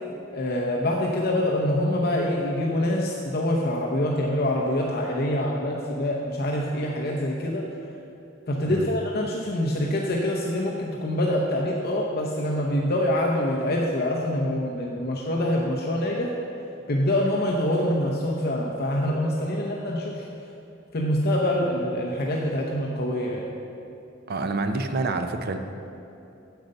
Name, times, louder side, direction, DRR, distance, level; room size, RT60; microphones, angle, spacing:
voice 1, 0.3-7.7 8.5-16.4 16.9-20.3 20.9-23.5, left 1 dB, 55° left, -2 dB, 0.8 m, -25 dB
voice 2, 24.3-25.6, right 3 dB, 55° right, 7 dB, 0.6 m, -27 dB
9.1 x 7.8 x 5.3 m, 2.8 s
head